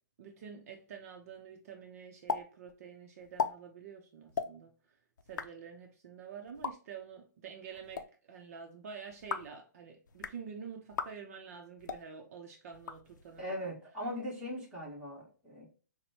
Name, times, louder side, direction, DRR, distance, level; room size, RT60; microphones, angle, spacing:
voice 1, 0.2-4.7 5.3-13.7, right 6 dB, 50° right, 0.7 m, -48 dB
sound 1, 2.3-2.4 2.7-2.8 3.2-3.5 4.3-4.5 5.2-5.5 6.5-6.7 7.7-8.0 9.1-9.5 10.1-10.4 10.9-11.1 11.8-12.0 12.7-13.4, left 6 dB, 75° left, 0.5 m, -36 dB
voice 2, 13.4-15.7, equal, 10° right, 1.6 m, -40 dB
5.9 x 2.2 x 2.8 m
hypercardioid pair, 150°, 10 cm